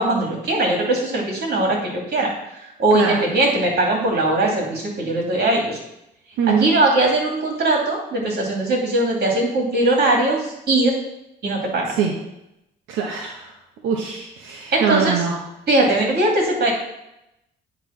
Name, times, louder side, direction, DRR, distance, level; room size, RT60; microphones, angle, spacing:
voice 1, 0.0-5.8 6.5-10.9 11.4-12.0 14.7-15.2 15.7-16.7, right 2 dB, 55° right, -1 dB, 2.7 m, -20 dB
voice 2, 6.4-6.7 11.9-12.1 12.9-13.5 13.8-15.4, right 6 dB, 90° right, 0 dB, 1.0 m, -22 dB
9.0 x 3.3 x 5.9 m, 0.86 s
cardioid pair, 90°, 20 cm